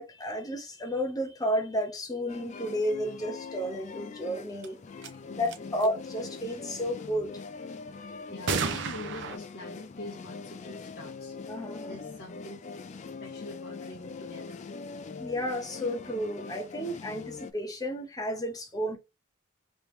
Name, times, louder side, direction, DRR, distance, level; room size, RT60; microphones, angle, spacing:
voice 1, 0.0-7.4 11.5-12.0 15.2-19.0, equal, 20° left, 0.7 m, -32 dB
sound 1, 2.3-17.5, left 4 dB, 35° left, 0.3 m, -42 dB
sound 2, 4.6-4.7 5.0-5.1 5.4-5.9 8.5-9.4, right 5 dB, 60° right, 0.5 m, -31 dB
voice 2, 5.3-5.8 8.3-12.9 13.2-14.6, left 1 dB, 55° left, 0.9 m, -45 dB
3.4 x 3.0 x 3.1 m
head